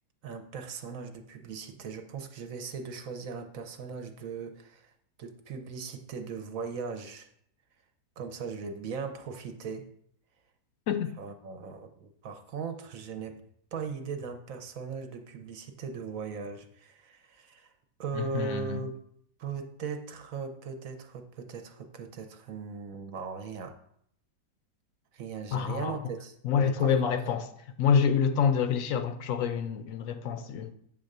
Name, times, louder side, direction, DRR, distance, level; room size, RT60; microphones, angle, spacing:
voice 1, 0.2-4.9 5.2-7.3 8.2-9.9 11.2-13.4 13.7-17.7 18.0-19.0 19.4-23.7 25.1-27.2, right 5 dB, 60° right, 1.1 m, -39 dB
voice 2, 18.1-18.8 25.5-26.0 26.4-27.5 27.8-30.7, left 7 dB, 65° left, 0.9 m, -27 dB
8.5 x 3.6 x 6.6 m
omnidirectional pair, 1.8 m